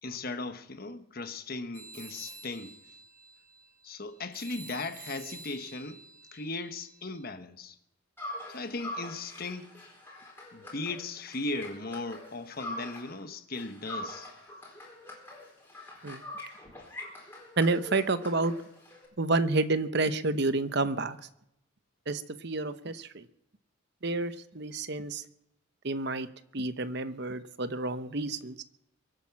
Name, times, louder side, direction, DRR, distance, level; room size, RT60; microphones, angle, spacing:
voice 1, 0.0-2.8 3.8-6.0 6.3-7.8 8.5-9.7 10.5-14.3, left 3 dB, 45° left, 1.2 m, -37 dB
sound 1, 1.7-7.2, right 4 dB, 35° right, 1.9 m, -49 dB
sound 2, 8.2-13.2 13.5-19.1, left 1 dB, 10° left, 4.2 m, -44 dB
voice 2, 17.6-18.5 19.2-21.2 22.1-23.2 24.0-25.2 25.8-26.3 26.5-28.6, right 3 dB, 50° right, 0.9 m, -29 dB
23.5 x 8.7 x 5.9 m
head